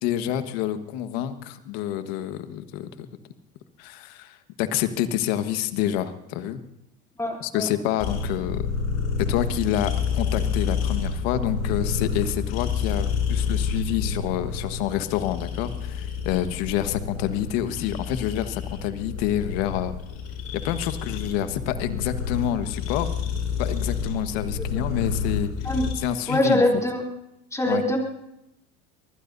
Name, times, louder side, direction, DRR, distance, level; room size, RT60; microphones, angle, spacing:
voice 1, 0.0-3.1 3.8-6.6 7.4-8.7 9.2-19.9 20.6-23.1 23.6-25.5 25.9-26.6 27.7-27.8, left 11 dB, 75° left, 9 dB, 1.5 m, -28 dB
voice 2, 7.2-7.7 25.6-25.9 26.3-27.0 27.5-28.0, left 1 dB, 10° left, 0 dB, 3.3 m, -23 dB
sound 1, 8.0-25.9, left 6 dB, 50° left, 6.1 m, -29 dB
25.0 x 20.0 x 2.7 m, 0.83 s
supercardioid pair, 130°, 32 cm